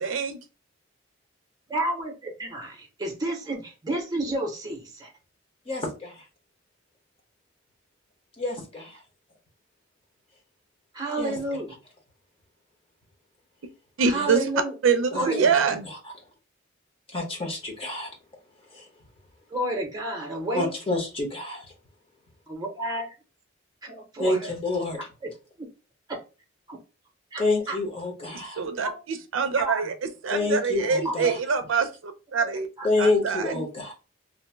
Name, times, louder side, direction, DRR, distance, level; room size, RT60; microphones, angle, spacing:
voice 1, 0.0-0.4 14.0-14.4 14.8-15.9 28.6-29.9 30.2-32.7 33.0-33.6, right 5 dB, 80° right, 0.4 m, -25 dB
voice 2, 1.7-5.1 10.9-11.7 14.0-14.7 15.1-15.7 19.5-20.7 22.5-23.1 23.8-24.5 25.2-25.3 26.1-26.2 26.7-26.8 27.3-27.8 28.8-28.9 29.5-29.9 31.0-31.3 32.4-32.9, right 1 dB, 20° right, 0.7 m, -31 dB
voice 3, 5.7-6.1 8.4-9.0 11.2-11.3 14.1-14.3 15.1-15.5 17.1-18.1 18.7-18.9 20.5-21.7 24.2-25.0 27.4-28.6 30.3-31.4 32.8-33.9, left 2 dB, 30° left, 0.8 m, -28 dB
2.6 x 2.1 x 3.2 m
head